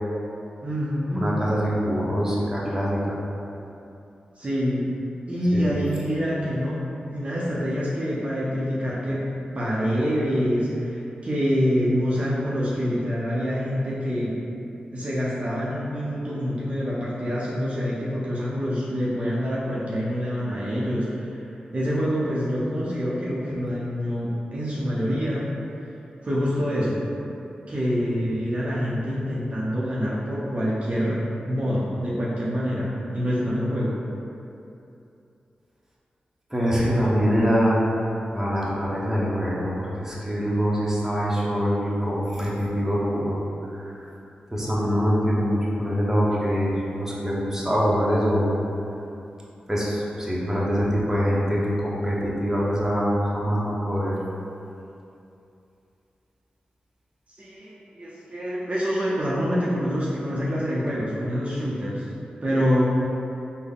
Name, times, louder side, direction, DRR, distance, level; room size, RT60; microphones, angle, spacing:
voice 1, 0.6-1.3 4.4-4.9 5.3-6.9 7.1-9.2 9.6-14.3 14.9-21.4 21.7-25.5 26.2-27.1 27.7-34.0 57.4-62.1 62.4-62.9, equal, 45° right, -8 dB, 0.6 m, -26 dB
voice 2, 1.2-3.2 5.5-5.9 36.5-37.9 38.3-43.4 43.7-44.1 44.5-46.7 47.0-48.5 49.7-54.1, equal, 15° right, -6 dB, 0.8 m, -24 dB
3.6 x 2.1 x 3.7 m, 2.7 s
cardioid pair, 45°, 3 cm